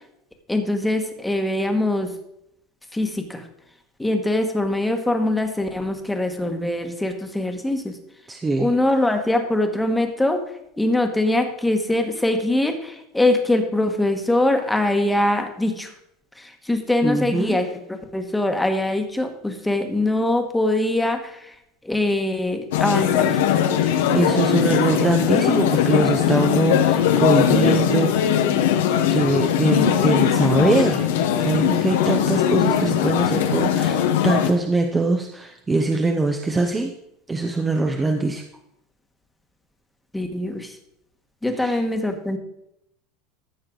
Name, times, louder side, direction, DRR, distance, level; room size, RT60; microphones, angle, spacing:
voice 1, 0.5-2.1 2.9-3.5 4.0-7.9 8.6-10.4 10.8-15.9 16.4-21.5 21.8-23.4 40.1-40.8 41.4-42.4, left 1 dB, 5° left, 4 dB, 1.3 m, -23 dB
voice 2, 8.3-8.7 17.0-17.6 23.8-28.5 29.1-31.1 31.4-36.9 37.3-38.4 41.6-41.8, right 3 dB, 15° right, 3 dB, 0.8 m, -22 dB
sound 1, 22.7-34.5, left 9 dB, 85° left, 1.1 m, -20 dB
14.0 x 6.5 x 3.9 m, 0.79 s
supercardioid pair, 140°, 0 cm